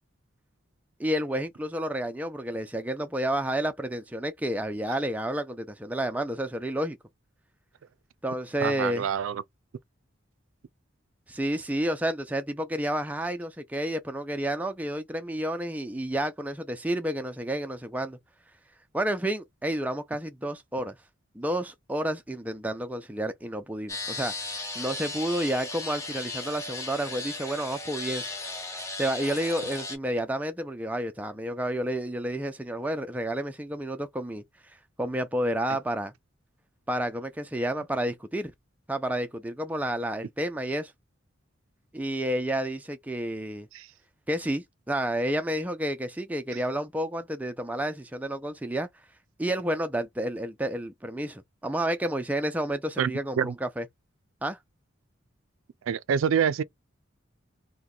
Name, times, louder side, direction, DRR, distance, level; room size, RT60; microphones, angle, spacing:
voice 1, 1.0-7.0 8.2-9.1 11.3-18.2 18.9-21.0 21.3-28.3 29.0-34.4 35.0-36.1 36.9-38.5 38.9-40.9 41.9-43.7 44.3-48.9 49.4-53.9 54.4-54.6, right 1 dB, 10° right, 0.4 m, -30 dB
voice 2, 8.6-9.4 43.7-43.9 53.0-53.1 53.4-53.5 55.9-56.6, right 7 dB, 85° right, 0.4 m, -26 dB
sound 1, 23.9-30.0, left 2 dB, 15° left, 0.8 m, -36 dB
2.8 x 2.2 x 3.7 m
head